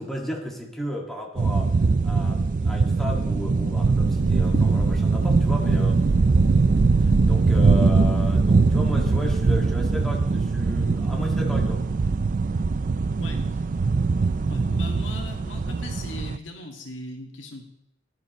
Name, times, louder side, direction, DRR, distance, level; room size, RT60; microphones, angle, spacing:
voice 1, 0.0-1.7 2.0-6.4 7.0-11.8, left 1 dB, ahead, -2 dB, 2.0 m, -34 dB
sound 1, 1.4-16.4, right 4 dB, 45° right, 0.4 m, -21 dB
sound 2, 4.1-9.6, equal, 65° right, 1.7 m, -33 dB
voice 2, 13.2-13.6 14.5-17.6, left 2 dB, 70° left, 2 dB, 1.8 m, -39 dB
19.5 x 11.0 x 3.1 m, 0.83 s
head